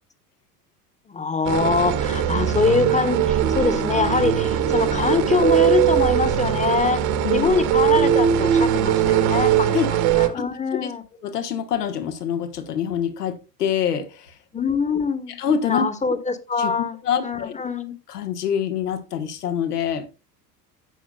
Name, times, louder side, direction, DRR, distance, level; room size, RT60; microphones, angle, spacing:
voice 1, 1.1-11.0 14.5-15.4 15.6-17.9, left 4 dB, 15° left, 1.3 m, -24 dB
sound 1, 1.4-10.3, right 10 dB, 55° right, 1.6 m, -20 dB
voice 2, 7.2-7.5 9.7-9.9 10.3-10.4 10.7-10.9 11.2-14.4 15.4-15.8 16.6-16.7 17.0-17.5 18.1-20.1, left 8 dB, 75° left, 1.5 m, -25 dB
16.5 x 6.1 x 2.3 m
figure-of-eight pair, 75°, 48 cm